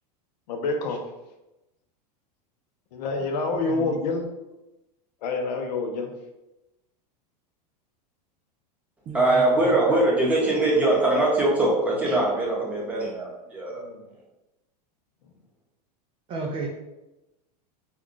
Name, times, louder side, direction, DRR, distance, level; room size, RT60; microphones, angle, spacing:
voice 1, 0.5-1.0 2.9-4.3 5.2-6.1 13.7-14.1, left 3 dB, 80° left, 4 dB, 0.6 m, -27 dB
voice 2, 3.5-4.0 9.1-9.8 12.1-12.2 16.3-16.7, right 3 dB, 25° right, 0 dB, 0.4 m, -34 dB
voice 3, 9.1-13.8, right 2 dB, 5° right, -5 dB, 0.8 m, -22 dB
2.3 x 2.3 x 3.7 m, 0.97 s
supercardioid pair, 135°, 21 cm